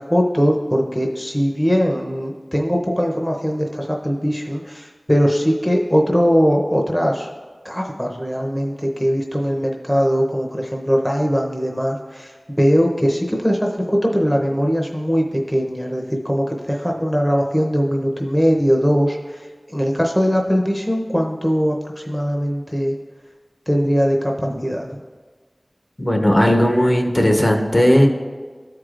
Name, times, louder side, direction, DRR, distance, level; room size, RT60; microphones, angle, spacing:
voice 1, 0.0-7.3 7.6-13.7 14.0-22.9 23.7-24.9, equal, 10° left, 0 dB, 0.7 m, -20 dB
voice 2, 26.0-28.1, equal, 40° left, 2 dB, 0.9 m, -16 dB
13.5 x 4.7 x 2.5 m, 1.5 s
wide cardioid pair, 50°, 0 cm